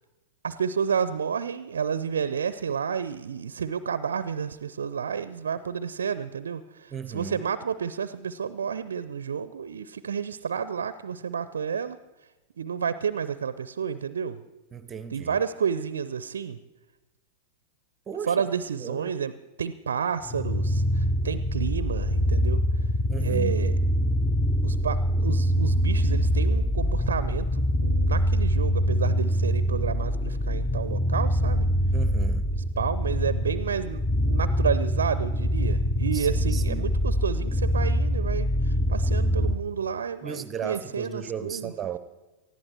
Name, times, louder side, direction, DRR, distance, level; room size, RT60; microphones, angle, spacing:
voice 1, 0.4-12.0 12.6-14.4 15.1-16.6 18.3-19.3 19.6-22.6 23.2-23.7 24.6-31.7 32.8-41.7, right 7 dB, 70° right, 15 dB, 0.6 m, -30 dB
voice 2, 6.9-7.4 14.7-15.4 18.1-18.4 18.8-19.1 23.1-23.6 31.9-32.5 36.1-36.9 40.2-42.0, right 7 dB, 20° right, 14 dB, 0.9 m, -35 dB
sound 1, 20.2-39.6, equal, 10° left, 1.1 m, -24 dB
19.5 x 14.0 x 4.5 m, 1.1 s
figure-of-eight pair, 95°, 0 cm